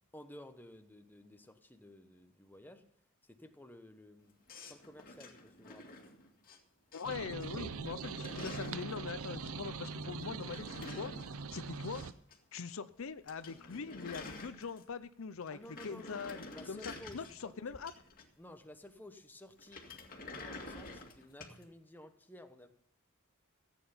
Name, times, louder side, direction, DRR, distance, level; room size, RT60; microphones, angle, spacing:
voice 1, 0.1-2.8 3.2-6.0 15.5-17.6 18.4-19.8 20.3-22.7, left 1 dB, 10° left, 6 dB, 1.1 m, -54 dB
sound 1, 4.5-6.6 6.9-7.5 7.7-8.9 10.2-12.4 12.6-12.7 13.0-13.1 13.3-15.0 15.4-18.5 19.6-21.6, left 2 dB, 45° left, 2.2 m, -49 dB
voice 2, 6.9-11.1 11.5-12.0 12.5-15.6 15.8-17.9, left 5 dB, 70° left, 13 dB, 0.6 m, -42 dB
sound 2, 7.0-12.1, right 4 dB, 85° right, 0.6 m, -42 dB
15.0 x 9.1 x 5.6 m, 0.67 s
head